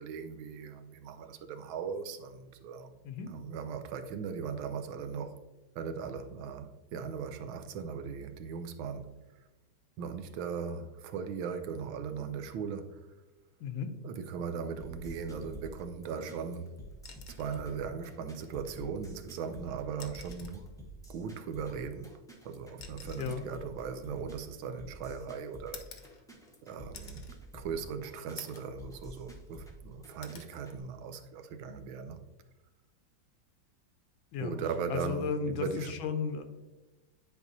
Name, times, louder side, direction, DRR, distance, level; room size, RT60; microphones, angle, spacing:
voice 1, 0.0-3.0 3.3-5.4 5.8-9.1 10.0-13.0 14.0-16.8 17.4-20.7 21.1-22.2 22.4-25.8 26.6-27.2 27.5-32.2 34.4-35.9, right 6 dB, 80° right, 1.4 m, -38 dB
voice 2, 13.6-13.9 23.2-23.5 34.3-34.6 34.9-36.4, left 6 dB, 85° left, 1.5 m, -34 dB
sound 1, 14.8-30.8, equal, 5° left, 0.4 m, -49 dB
sound 2, 17.1-17.7 19.1-19.2 19.9-20.7 21.8-24.9 25.7-26.6 26.9-27.4 27.8-27.9 28.4-28.8 29.2-29.8 30.2-30.5 32.0-32.2, left 6 dB, 60° left, 1.0 m, -51 dB
10.0 x 4.5 x 2.7 m
omnidirectional pair, 2.2 m